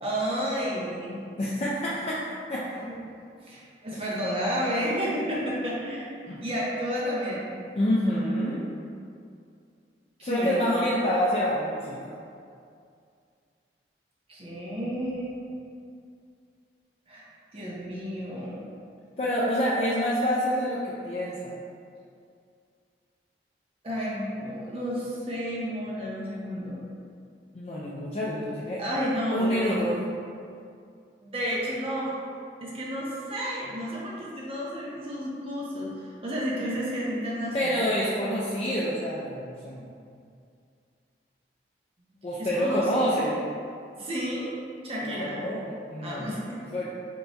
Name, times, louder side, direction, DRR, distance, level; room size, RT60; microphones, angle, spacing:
voice 1, 0.0-1.2 2.8-3.0 3.4-6.1 6.4-7.5 10.2-10.8 14.3-15.4 17.1-17.3 17.5-18.6 23.8-26.9 28.8-29.8 31.2-32.1 32.6-37.9 42.4-43.3 44.0-44.5 44.8-45.4 46.0-46.6, equal, 35° right, -6 dB, 0.8 m, -31 dB
voice 2, 1.4-2.2 2.5-2.7 3.9-4.0 6.3-6.4 7.7-8.6 10.2-12.2 19.2-21.5 27.5-28.8 29.3-29.9 37.5-39.9 42.2-43.4 45.0-46.4 46.7-46.8, equal, 35° left, -7 dB, 0.4 m, -27 dB
4.6 x 2.2 x 4.0 m, 2.3 s
head